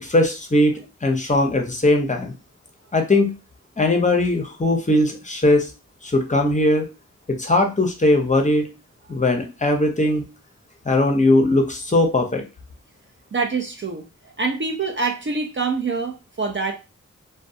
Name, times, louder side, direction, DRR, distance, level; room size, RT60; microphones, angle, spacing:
voice 1, 0.0-2.3 2.9-3.3 3.8-5.7 6.0-6.9 7.3-8.7 9.1-10.2 10.9-12.4, left 2 dB, 25° left, 4 dB, 0.6 m, -19 dB
voice 2, 13.3-16.7, right 4 dB, 40° right, 2 dB, 0.5 m, -25 dB
2.2 x 2.2 x 2.7 m, 0.28 s
cardioid pair, 45°, 31 cm